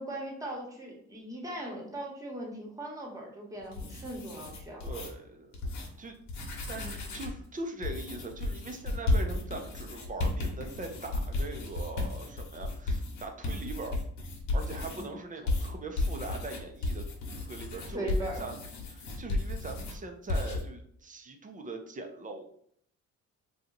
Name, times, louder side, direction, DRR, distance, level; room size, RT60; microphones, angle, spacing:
voice 1, 0.0-5.0 14.9-15.1 17.9-18.5, right 1 dB, 10° right, -1 dB, 1.1 m, -39 dB
sound 1, 3.6-5.1 5.5-5.9 6.2-7.4 7.8-15.0 15.5-20.0 20.3-20.6, left 2 dB, 80° left, 1.0 m, -33 dB
voice 2, 4.8-5.6 6.0-6.1 6.7-14.0 14.5-17.0 17.4-18.6 18.9-22.5, right 3 dB, 25° right, 4 dB, 0.6 m, -41 dB
2.8 x 2.4 x 3.9 m, 0.67 s
cardioid pair, 90°, 30 cm